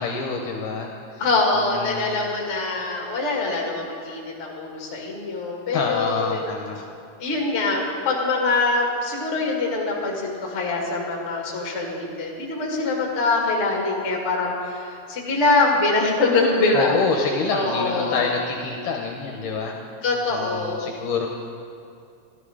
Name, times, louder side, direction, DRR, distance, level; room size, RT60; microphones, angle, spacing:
voice 1, 0.0-1.2 1.6-2.0 5.7-6.8 16.7-19.8 20.3-21.3, left 5 dB, 75° left, 1 dB, 2.2 m, -27 dB
voice 2, 1.2-6.4 7.2-16.9 17.5-18.3 20.0-20.9, left 3 dB, 30° left, -2 dB, 1.4 m, -24 dB
13.5 x 13.0 x 4.9 m, 2.5 s
omnidirectional pair, 4.4 m